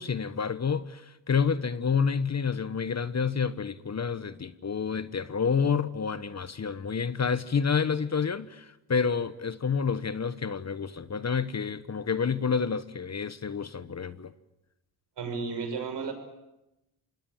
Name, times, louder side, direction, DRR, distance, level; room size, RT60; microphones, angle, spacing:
voice 1, 0.0-14.3, left 6 dB, 35° left, 1.2 m, -29 dB
voice 2, 15.2-16.1, right 5 dB, 65° right, 5.9 m, -33 dB
26.5 x 19.5 x 8.9 m
supercardioid pair, 55°, 45 cm